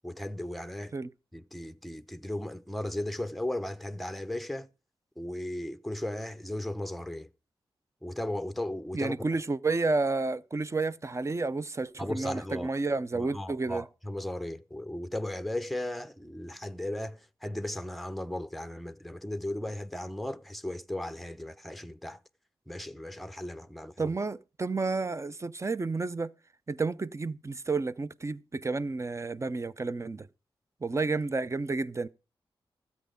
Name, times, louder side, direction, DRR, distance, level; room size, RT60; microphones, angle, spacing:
voice 1, 0.0-0.9 1.3-4.7 5.2-7.3 8.0-9.2 12.0-12.7 13.1-22.2 22.7-24.2, left 1 dB, ahead, 0.8 m, -36 dB
voice 2, 8.9-13.8 24.0-26.3 26.7-30.3 30.8-32.1, right 3 dB, 30° right, 0.6 m, -31 dB
13.0 x 8.4 x 5.1 m
cardioid pair, 55°, 10 cm